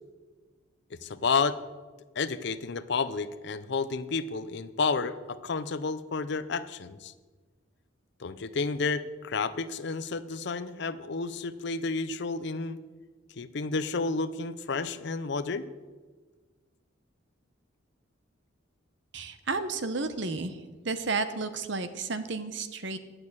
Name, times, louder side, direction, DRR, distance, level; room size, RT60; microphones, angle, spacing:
voice 1, 0.9-1.6 2.1-7.1 8.2-12.8 13.4-15.6, left 4 dB, 55° left, 14 dB, 0.5 m, -31 dB
voice 2, 19.1-20.6 20.8-23.0, right 3 dB, 55° right, 11 dB, 0.8 m, -32 dB
10.5 x 6.3 x 8.6 m, 1.4 s
head